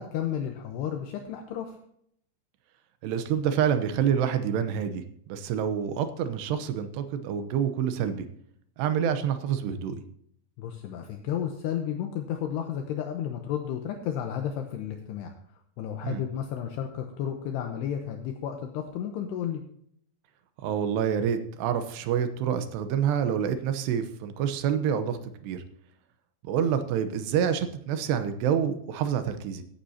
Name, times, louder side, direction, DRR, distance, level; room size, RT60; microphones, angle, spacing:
voice 1, 0.0-1.8 10.6-15.3 15.8-19.6, left 9 dB, 75° left, 4 dB, 2.7 m, -32 dB
voice 2, 3.0-8.3 8.8-10.0 16.0-16.2 20.6-25.6 26.4-29.6, right 8 dB, 75° right, 9 dB, 2.8 m, -27 dB
16.0 x 9.9 x 2.8 m, 0.68 s
omnidirectional pair, 5.4 m